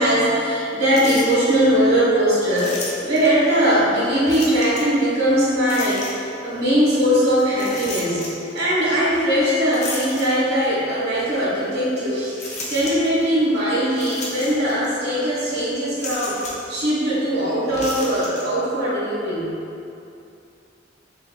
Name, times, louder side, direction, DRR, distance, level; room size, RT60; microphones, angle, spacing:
voice 1, 0.0-8.3 8.5-12.4 12.7-16.4 16.7-19.5, equal, 55° right, -8 dB, 1.3 m, -20 dB
sound 1, 0.9-1.6 2.5-3.4 4.3-5.0 5.6-6.4 7.5-8.6 9.7-10.8 11.3-11.4 12.4-13.2 13.9-14.9 15.1-15.3 16.0-16.7 17.7-18.4, left 2 dB, 40° left, 0.6 m, -33 dB
4.0 x 3.8 x 2.2 m, 2.7 s
head